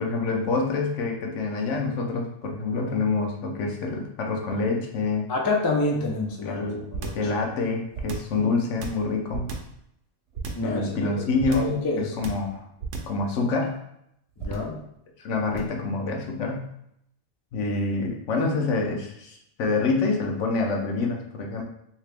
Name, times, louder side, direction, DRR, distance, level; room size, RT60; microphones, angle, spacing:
voice 1, 0.0-5.3 6.2-6.9 7.1-9.5 10.6-12.6 13.1-13.8 15.2-16.7 17.5-21.6, left 3 dB, 80° left, 1 dB, 1.0 m, -27 dB
voice 2, 5.3-7.1 10.5-11.2 11.5-12.1 14.4-14.8, left 2 dB, 35° left, 0 dB, 0.3 m, -28 dB
sound 1, 6.9-7.3 7.9-8.4 8.8-9.8 10.3-10.7 11.4-11.8 12.2-12.5 12.8-13.2 14.4-14.8 15.5-15.8, right 4 dB, 70° right, 0.8 m, -33 dB
2.9 x 2.8 x 3.3 m, 0.75 s
omnidirectional pair, 1.2 m